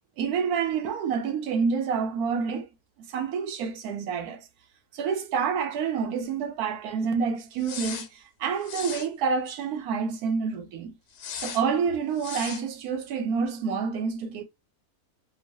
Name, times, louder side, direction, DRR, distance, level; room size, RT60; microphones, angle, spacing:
voice 1, 0.2-2.7 3.1-4.5 4.9-10.9 11.4-14.4, right 6 dB, 80° right, 1.1 m, -28 dB
sound 1, 7.6-8.1 8.6-9.1 11.1-11.6 12.2-12.6, left 7 dB, 85° left, 1.3 m, -37 dB
3.0 x 2.2 x 2.6 m
omnidirectional pair, 1.6 m